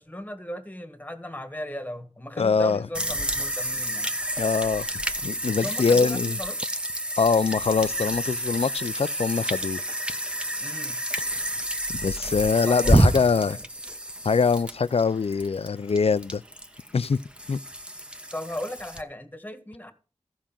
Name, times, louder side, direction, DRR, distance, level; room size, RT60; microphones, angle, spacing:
voice 1, 0.0-4.1 5.6-6.6 10.6-11.0 12.5-13.6 18.3-19.9, left 1 dB, 15° left, 1.6 m, -37 dB
voice 2, 2.4-2.8 4.4-4.9 5.2-6.4 7.2-9.8 11.9-13.6 14.2-16.4 16.9-17.2 17.5-17.6, left 5 dB, 60° left, 0.4 m, -23 dB
sound 1, 2.9-19.0, right 1 dB, 10° right, 1.1 m, -28 dB
14.0 x 5.0 x 7.3 m
wide cardioid pair, 70°, 12 cm